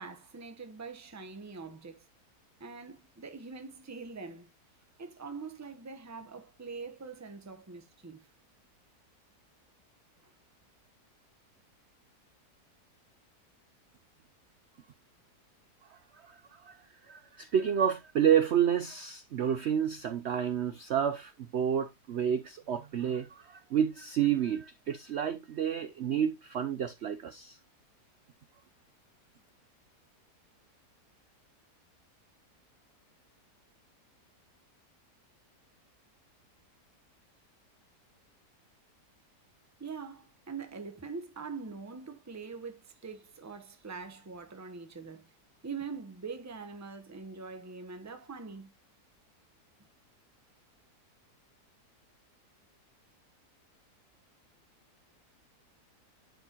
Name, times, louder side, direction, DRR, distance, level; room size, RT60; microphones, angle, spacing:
voice 1, 0.0-2.0 2.6-4.5 5.0-8.3 10.2-10.3 39.8-45.3 45.6-48.7, right 5 dB, 15° right, 0.7 m, -43 dB
voice 2, 16.2-16.8 17.1-27.6, right 9 dB, 60° right, 0.7 m, -30 dB
10.5 x 4.7 x 2.9 m
omnidirectional pair, 1.7 m